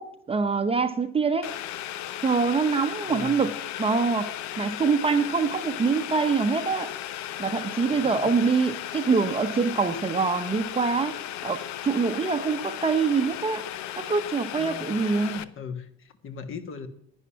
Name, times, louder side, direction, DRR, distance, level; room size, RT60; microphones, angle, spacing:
voice 1, 0.0-1.5 2.2-4.3 4.6-6.9 7.4-11.2 11.4-13.6 14.0-15.5, right 4 dB, 20° right, 8 dB, 0.9 m, -25 dB
Boiling, 1.4-15.4, left 12 dB, 65° left, 0.8 m, -36 dB
voice 2, 3.1-3.5 7.9-8.4 14.6-14.9 15.4-16.9, left 6 dB, 40° left, 9 dB, 1.4 m, -39 dB
11.0 x 9.9 x 5.8 m, 0.71 s
cardioid pair, 120°, 31 cm